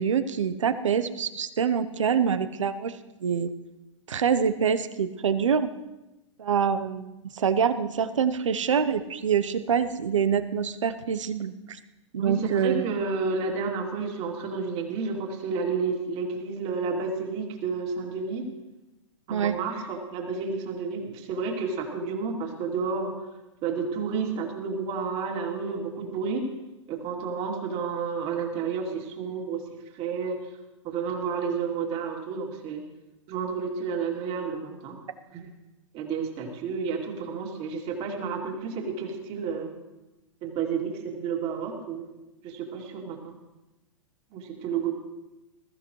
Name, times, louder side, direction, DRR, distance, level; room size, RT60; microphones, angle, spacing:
voice 1, 0.0-3.5 4.1-5.7 6.4-11.8 12.1-12.8 19.3-19.6, right 7 dB, 75° right, 12 dB, 0.9 m, -25 dB
voice 2, 12.2-18.5 19.3-23.1 23.6-26.4 26.9-29.6 29.9-30.4 30.8-32.8 33.3-35.0 35.3-35.5 35.9-39.7 40.4-42.0 42.4-43.3 44.3-44.9, right 5 dB, 35° right, 1 dB, 2.8 m, -31 dB
21.0 x 14.0 x 3.2 m, 1.0 s
figure-of-eight pair, 105°, 16 cm